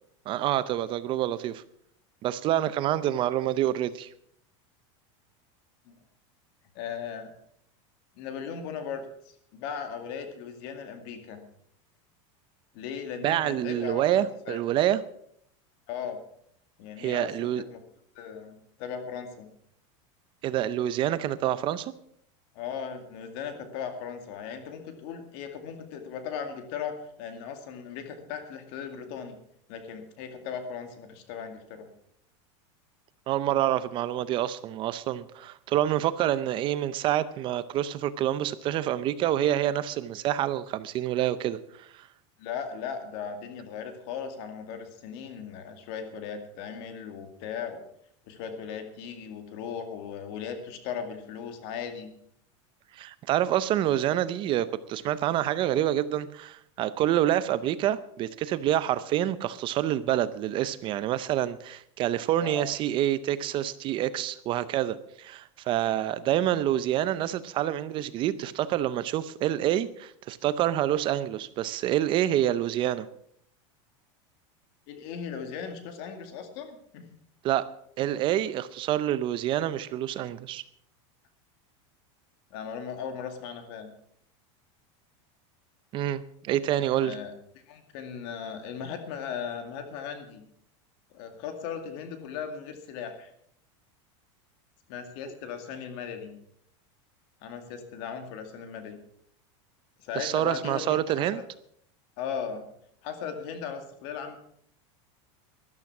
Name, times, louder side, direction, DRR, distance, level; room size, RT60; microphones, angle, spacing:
voice 1, 0.3-1.6 2.2-4.1 13.2-15.0 17.0-17.6 20.4-21.9 33.3-42.1 52.9-73.1 77.4-77.7 78.0-80.6 85.9-87.2 100.2-101.4, right 12 dB, 30° right, 15 dB, 0.6 m, -27 dB
voice 2, 6.7-7.3 8.2-11.4 12.7-14.6 15.9-16.2 16.8-17.8 18.1-19.5 22.5-29.4 29.7-31.9 42.4-47.8 48.3-52.1 62.4-62.7 65.9-66.1 74.9-77.1 82.5-83.9 87.0-87.3 87.7-90.4 91.1-93.3 94.9-96.3 97.4-99.0 100.0-101.4 102.2-102.7 103.0-104.4, left 7 dB, 55° left, 7 dB, 2.3 m, -37 dB
13.5 x 12.0 x 6.0 m, 0.69 s
supercardioid pair, 160°, 16 cm